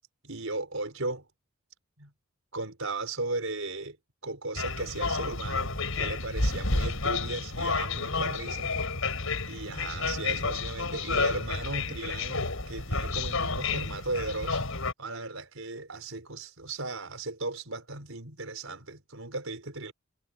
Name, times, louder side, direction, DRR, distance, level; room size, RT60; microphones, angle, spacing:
voice 1, 0.2-1.3 2.0-2.1 2.5-4.0 4.2-8.7 9.5-14.6 15.0-19.9, right 2 dB, 70° right, 5.0 m, -36 dB
sound 1, 4.5-14.9, left 3 dB, 75° left, 5.3 m, -30 dB
head